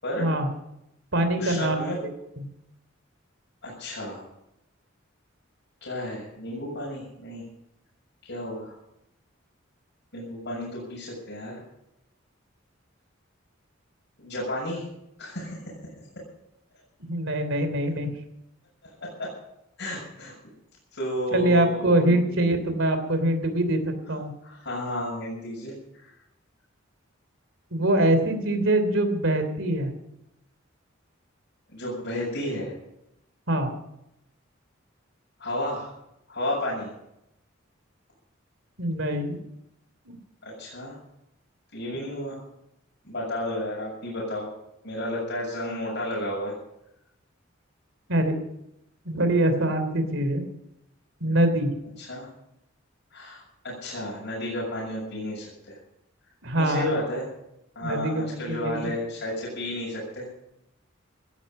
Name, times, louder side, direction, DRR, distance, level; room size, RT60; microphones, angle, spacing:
voice 1, 0.2-0.5 1.1-2.1 2.4-2.5 17.0-18.1 21.3-24.3 27.7-29.9 33.5-33.7 38.8-39.4 40.0-40.1 48.1-48.3 49.0-50.4 51.2-51.7 56.4-57.0 57.8-58.8, right 1 dB, 70° right, 8 dB, 3.1 m, -24 dB
voice 2, 1.4-2.0 3.6-4.2 5.8-7.4 8.2-8.7 10.1-11.6 14.2-14.8 15.2-15.6 18.8-19.3 19.8-20.3 20.9-22.4 24.4-26.1 31.7-32.7 35.4-35.9 36.3-36.9 40.4-41.0 41.7-42.4 43.0-44.5 44.8-46.5 52.0-52.3 53.1-55.8 56.6-57.3 57.8-60.3, left 1 dB, 60° left, -5 dB, 7.1 m, -32 dB
17.0 x 14.0 x 5.4 m, 0.83 s
head